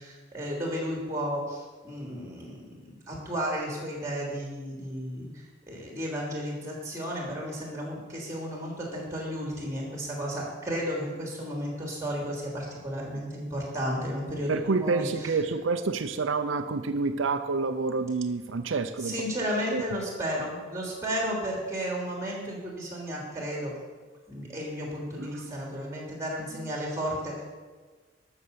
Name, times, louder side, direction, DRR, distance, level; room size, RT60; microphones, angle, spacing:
voice 1, 0.0-5.3 5.7-15.4 19.0-23.7 24.3-27.4, equal, 15° right, -1 dB, 3.1 m, -33 dB
voice 2, 14.5-19.1 19.7-19.8 25.2-25.3, right 4 dB, 85° right, 8 dB, 0.6 m, -28 dB
12.5 x 6.7 x 6.9 m, 1.4 s
head